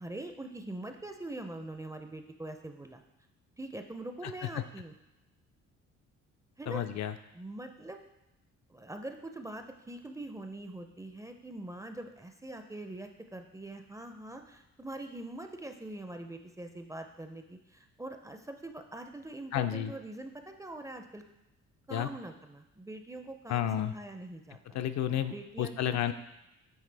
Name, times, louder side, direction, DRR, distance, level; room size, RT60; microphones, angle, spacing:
voice 1, 0.0-3.0 3.6-4.9 6.6-6.8 7.3-8.0 8.7-21.2 21.9-24.8 25.3-26.1, right 1 dB, 10° right, 6 dB, 0.4 m, -43 dB
voice 2, 6.7-7.1 19.5-19.9 21.9-22.1 23.5-23.9 24.7-26.1, left 10 dB, 65° left, 9 dB, 0.4 m, -31 dB
8.9 x 3.2 x 3.3 m, 0.93 s
cardioid pair, 90°, 30 cm